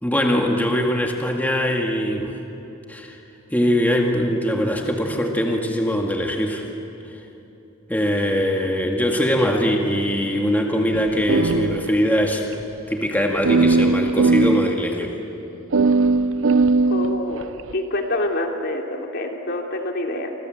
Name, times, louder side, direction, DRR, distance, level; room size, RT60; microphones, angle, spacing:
voice 1, 0.0-2.3 2.9-3.2 3.5-6.6 7.9-12.4 12.9-15.2, equal, 10° left, 1 dB, 2.0 m, -21 dB
sound 1, 10.9-12.2 12.5-12.6 13.4-14.7 15.7-17.7, right 3 dB, 70° right, 0.8 m, -19 dB
voice 2, 16.9-20.3, left 1 dB, 55° left, 2 dB, 3.1 m, -26 dB
29.5 x 26.0 x 7.8 m, 2.9 s
head